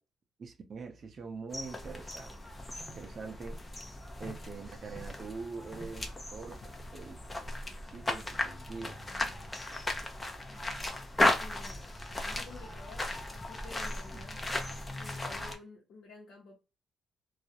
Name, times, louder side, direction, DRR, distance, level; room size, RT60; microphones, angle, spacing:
voice 1, 0.4-2.4 2.9-3.6 4.2-6.6 6.9-7.2 7.8-9.3 14.1-14.5, right 4 dB, 45° right, 0.5 m, -44 dB
sound 1, 1.5-15.5, left 2 dB, 20° left, 0.6 m, -36 dB
voice 2, 11.4-11.8 12.3-14.3 15.0-16.6, left 3 dB, 70° left, 0.7 m, -51 dB
2.3 x 2.0 x 2.7 m
cardioid pair, 90°, 0 cm